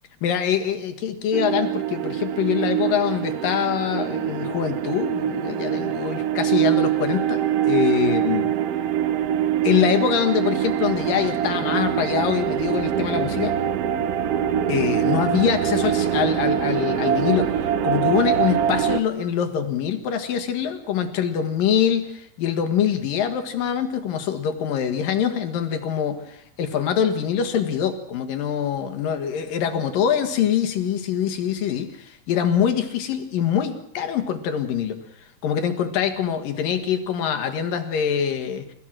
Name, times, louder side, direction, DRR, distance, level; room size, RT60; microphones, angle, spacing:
voice 1, 0.2-8.5 9.6-13.5 14.7-22.1 22.4-35.0 35.4-38.7, left 8 dB, 75° left, 7 dB, 3.3 m, -24 dB
sound 1, 1.3-19.0, right 10 dB, 75° right, 1.4 m, -24 dB
29.5 x 15.5 x 6.2 m, 0.71 s
omnidirectional pair, 4.0 m